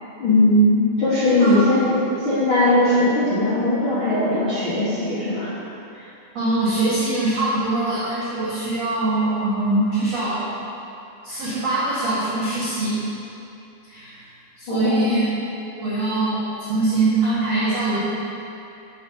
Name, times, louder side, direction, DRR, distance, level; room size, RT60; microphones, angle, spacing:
voice 1, 0.2-5.5 14.7-15.3, left 1 dB, 80° left, -12 dB, 1.1 m, -19 dB
voice 2, 1.2-1.6 5.9-6.1 6.3-10.5 11.2-13.0 13.9-14.2 14.6-15.3 15.8-18.0, right 2 dB, 90° right, -10 dB, 1.4 m, -23 dB
6.4 x 6.0 x 5.4 m, 2.7 s
omnidirectional pair, 5.0 m